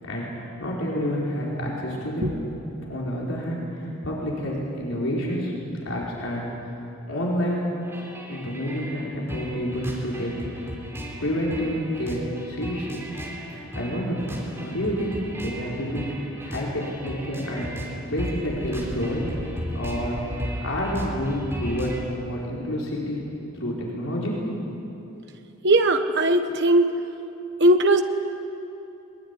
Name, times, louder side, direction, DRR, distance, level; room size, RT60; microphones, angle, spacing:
voice 1, 0.0-2.3 2.9-5.5 5.8-6.5 7.1-7.7 8.3-10.3 11.2-13.0 13.5-14.2 14.6-16.1 16.4-17.7 18.1-19.3 19.7-20.2 20.6-21.9 22.2-23.2 23.5-24.5, equal, 70° left, -4 dB, 4.8 m, -28 dB
sound 1, 7.8-22.0, equal, 10° right, 3.7 m, -36 dB
voice 2, 25.6-27.0 27.6-28.0, right 1 dB, 55° right, 7 dB, 1.5 m, -19 dB
22.0 x 21.5 x 9.9 m, 2.9 s
head